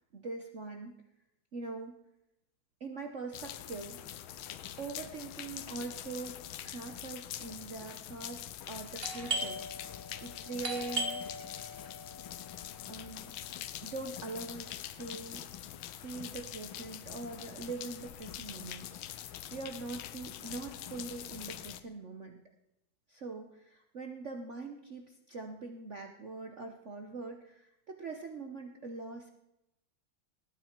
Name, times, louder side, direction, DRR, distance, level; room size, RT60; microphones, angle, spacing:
voice 1, 0.1-1.0 1.5-2.0 2.8-4.0 4.8-9.6 10.2-11.2 12.9-13.3 13.8-15.5 16.0-22.4 23.1-29.3, right 3 dB, 50° right, 4 dB, 1.0 m, -43 dB
sound 1, 3.3-21.8, left 12 dB, 80° left, 1.5 m, -44 dB
Doorbell, 9.0-14.4, right 1 dB, 30° right, 1.7 m, -40 dB
19.5 x 9.0 x 4.5 m, 0.87 s
omnidirectional pair, 2.3 m